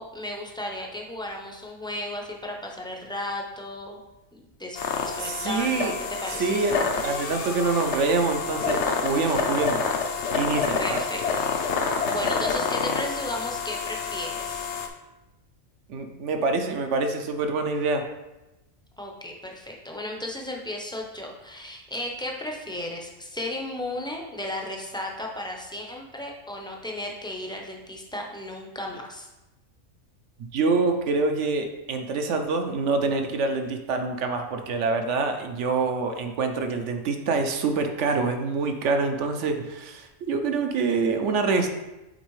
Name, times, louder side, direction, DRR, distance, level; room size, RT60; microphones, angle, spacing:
voice 1, 0.0-4.0 4.3-6.5 10.8-11.5 12.1-14.7 19.0-29.3, left 1 dB, 5° left, -1 dB, 0.5 m, -35 dB
sound 1, 4.8-14.9, left 5 dB, 65° left, 0.9 m, -28 dB
voice 2, 5.2-6.0 6.4-9.8 10.3-11.0 15.9-18.0 30.5-41.7, right 4 dB, 65° right, 6 dB, 1.0 m, -26 dB
8.0 x 4.4 x 3.1 m, 1.0 s
omnidirectional pair, 1.4 m